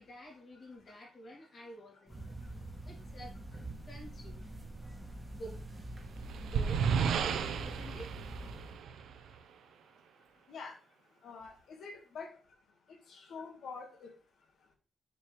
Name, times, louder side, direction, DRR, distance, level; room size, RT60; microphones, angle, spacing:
voice 1, 0.0-2.4 2.9-3.4 3.8-4.4 5.3-5.6 6.4-7.1 7.6-8.2 9.3-9.4, right 1 dB, 40° left, -2 dB, 3.4 m, -49 dB
sound 1, 2.1-8.8, right 1 dB, 10° right, 1.6 m, -45 dB
sound 2, 5.7-9.4, right 6 dB, 90° right, 0.9 m, -33 dB
voice 2, 11.2-12.3 13.1-14.1, left 5 dB, 60° left, 4 dB, 2.0 m, -46 dB
7.5 x 7.3 x 3.4 m, 0.36 s
wide cardioid pair, 165°, 0 cm